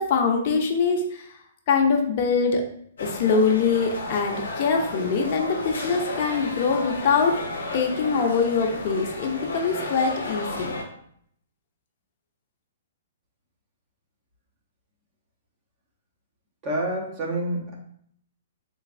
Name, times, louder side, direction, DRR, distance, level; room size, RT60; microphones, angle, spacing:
voice 1, 0.0-1.3 1.7-2.6 3.0-7.4 7.7-10.8, left 5 dB, 45° left, 3 dB, 0.7 m, -23 dB
sound 1, 3.0-10.8, left 2 dB, 75° left, 0.9 m, -33 dB
voice 2, 16.6-17.7, right 1 dB, 30° right, -1 dB, 0.9 m, -28 dB
3.3 x 3.1 x 2.5 m, 0.66 s
hypercardioid pair, 140°, 0 cm